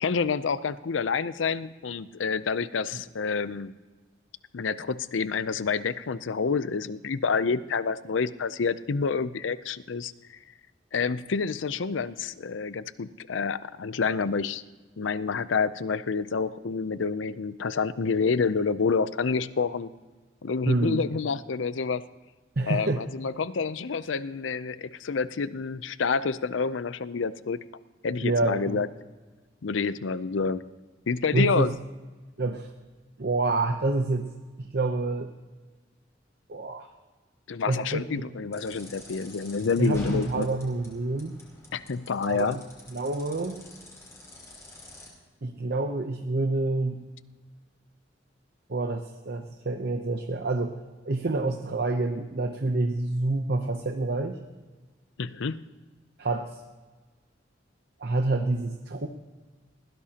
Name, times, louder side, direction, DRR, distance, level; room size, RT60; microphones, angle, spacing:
voice 1, 0.0-3.7 4.5-10.1 10.9-14.6 15.0-19.9 20.4-22.0 22.7-27.6 28.0-28.9 29.6-30.6 31.1-31.7 37.5-40.5 41.7-42.6 55.2-55.6, left 5 dB, 85° left, 15 dB, 0.5 m, -28 dB
voice 2, 20.6-21.1 22.6-23.0 28.2-28.8 31.3-31.8 32.4-32.7 33.2-34.3 34.6-35.3 36.5-36.9 37.7-38.0 39.8-41.4 42.3-42.6 42.9-43.6 45.4-47.0 48.7-50.7 51.0-54.4 56.2-56.6 58.0-59.1, right 2 dB, 55° right, 5 dB, 0.7 m, -27 dB
sound 1, 38.5-45.1, left 1 dB, 15° left, 4.5 m, -47 dB
20.5 x 16.0 x 2.9 m, 1.3 s
head